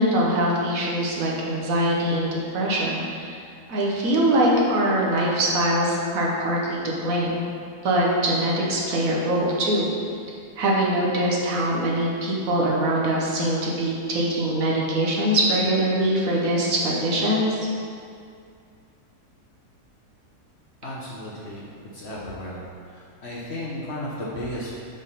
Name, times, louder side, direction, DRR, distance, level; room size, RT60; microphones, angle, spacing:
voice 1, 0.0-3.4 3.7-7.4 7.8-9.9 10.6-17.7, right 1 dB, 60° right, -3 dB, 1.2 m, -23 dB
voice 2, 20.8-21.6 21.9-22.6 23.2-24.7, left 1 dB, 50° left, -5 dB, 0.9 m, -33 dB
5.4 x 3.5 x 5.5 m, 2.3 s
omnidirectional pair, 1.7 m